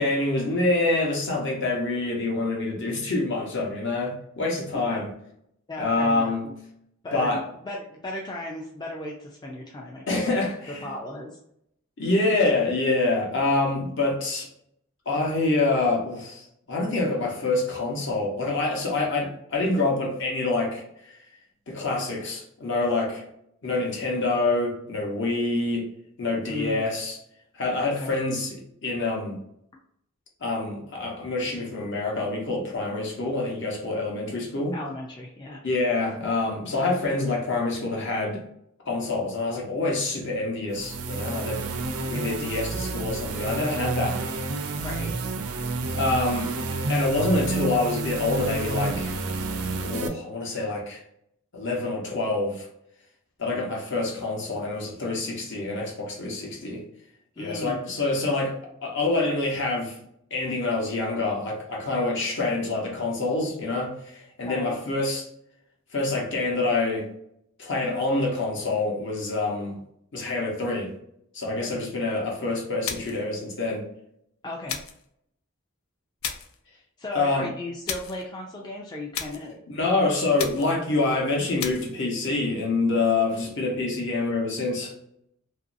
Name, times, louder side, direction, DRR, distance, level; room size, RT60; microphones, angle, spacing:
voice 1, 0.0-5.1 5.8-6.5 7.1-7.4 10.1-10.9 12.0-14.5 15.1-21.2 21.7-23.3 23.6-25.9 26.2-27.2 27.5-29.4 30.4-34.8 35.6-38.4 38.9-41.6 42.1-44.2 45.9-46.5 46.9-49.2 49.8-51.0 51.5-52.7 53.4-56.8 57.4-58.6 58.8-60.0 60.3-65.3 65.9-67.1 67.6-69.8 70.1-70.9 71.3-73.9 77.1-77.5 79.7-84.9, left 2 dB, 55° left, -1 dB, 0.9 m, -26 dB
voice 2, 5.7-6.5 7.0-10.4 10.8-11.4 26.5-26.8 27.8-28.1 34.7-35.6 44.8-45.1 57.4-57.8 64.4-64.8 74.4-74.8 77.0-79.6, left 1 dB, 20° left, -2 dB, 0.3 m, -36 dB
sound 1, 40.7-50.1, right 3 dB, 90° right, 0.5 m, -30 dB
sound 2, 72.8-73.3 74.7-75.1 76.2-76.6 77.9-78.2 79.1-79.5 80.4-80.8 81.6-82.0, left 7 dB, 75° left, 0.5 m, -34 dB
3.0 x 2.6 x 2.5 m, 0.74 s
head